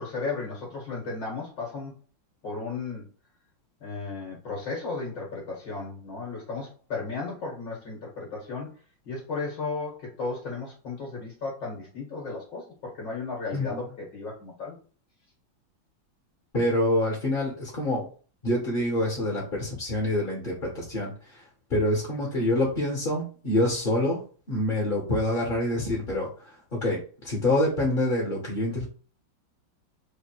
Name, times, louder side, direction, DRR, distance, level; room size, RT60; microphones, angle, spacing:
voice 1, 0.0-1.9 2.4-3.1 3.8-8.7 9.1-14.8, left 3 dB, 65° left, -3 dB, 2.6 m, -34 dB
voice 2, 13.5-13.8 16.5-18.1 18.4-21.4 21.7-28.9, left 1 dB, 30° left, -2 dB, 1.1 m, -26 dB
5.0 x 2.1 x 4.6 m, 0.38 s
omnidirectional pair, 2.1 m